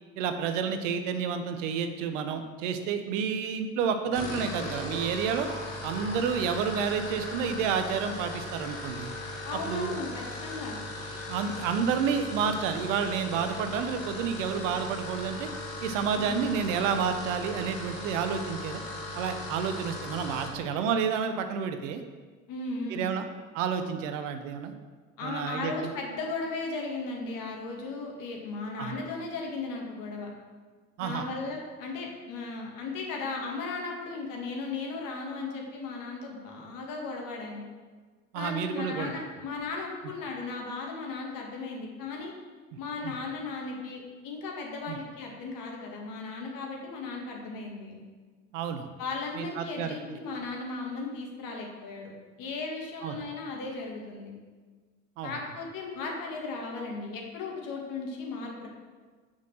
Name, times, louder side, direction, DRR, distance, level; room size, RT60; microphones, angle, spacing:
voice 1, 0.2-5.5 5.8-9.1 9.7-10.0 11.3-15.5 15.8-18.8 19.1-22.0 22.9-23.2 23.5-24.7 25.2-25.7 28.8-28.9 31.0-31.3 38.3-39.1 43.0-43.1 44.9-45.0 48.5-48.9 49.4-50.2 53.0-53.2 55.2-55.3, right 6 dB, 70° right, 8 dB, 0.9 m, -30 dB
sound 1, 4.0-20.6, left 2 dB, 90° left, 1.6 m, -38 dB
voice 2, 9.4-10.8 16.1-16.4 22.5-23.1 25.2-30.3 31.0-37.6 38.3-42.3 42.8-48.0 49.0-52.1 52.4-54.3 55.2-58.7, left 3 dB, 55° left, 0 dB, 2.3 m, -36 dB
7.4 x 5.6 x 6.4 m, 1.4 s
hypercardioid pair, 65°, 39 cm